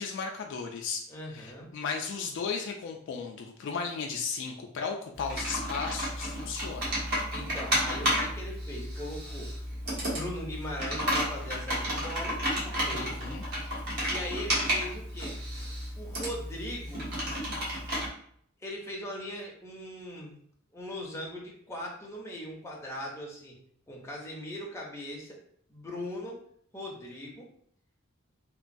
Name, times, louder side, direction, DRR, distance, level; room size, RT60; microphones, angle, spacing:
voice 1, 0.0-1.0 1.3-7.0 12.9-13.7, left 5 dB, 60° left, 2 dB, 0.3 m, -35 dB
voice 2, 1.1-1.7 7.3-9.5 10.0-12.4 12.6-13.2 14.1-15.4 16.0-17.1 18.6-20.4 20.7-23.5 23.9-25.4 25.7-26.4 26.7-27.5, left 1 dB, 15° left, -2 dB, 0.6 m, -39 dB
Computer keyboard, 5.2-18.1, equal, 50° right, 1.0 m, -32 dB
3.0 x 2.2 x 2.5 m, 0.63 s
head